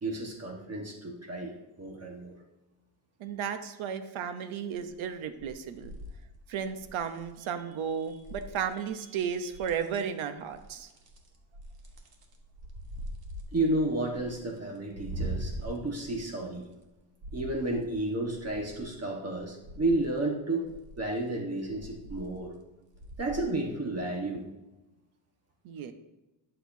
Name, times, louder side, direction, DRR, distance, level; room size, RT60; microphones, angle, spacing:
voice 1, 0.0-2.4 13.5-16.7 17.3-20.7 21.0-22.5 23.2-24.4, right 2 dB, 30° right, 0 dB, 1.4 m, -32 dB
voice 2, 3.2-5.9 6.5-10.9 25.6-25.9, right 7 dB, 75° right, 9 dB, 0.9 m, -34 dB
sound 1, 4.7-5.1 5.4-7.3 8.0-8.8 9.1-10.2 10.5-16.9 17.2-18.9 19.3-20.1 20.7-21.2 21.6-22.6 22.9-23.5 23.9-24.0, right 1 dB, 50° right, 1.4 m, -42 dB
11.0 x 6.6 x 2.7 m, 1.0 s
cardioid pair, 120°, 48 cm